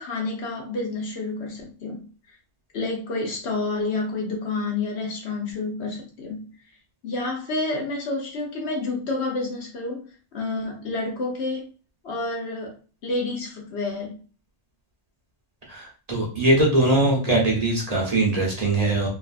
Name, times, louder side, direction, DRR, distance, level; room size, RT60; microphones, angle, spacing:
voice 1, 0.0-2.1 2.7-6.5 7.0-10.0 10.3-11.7 12.0-12.8 13.0-14.2, left 3 dB, 70° left, 0 dB, 1.1 m, -29 dB
voice 2, 15.7-19.1, right 2 dB, 40° right, -2 dB, 0.8 m, -21 dB
3.1 x 2.3 x 2.5 m, 0.37 s
omnidirectional pair, 1.2 m